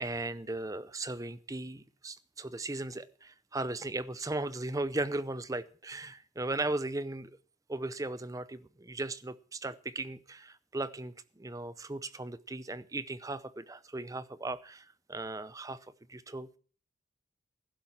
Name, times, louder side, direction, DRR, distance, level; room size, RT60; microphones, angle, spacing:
voice 1, 0.0-7.4 7.7-16.6, right 2 dB, 15° right, 16 dB, 0.6 m, -37 dB
16.0 x 7.6 x 7.2 m, 0.42 s
head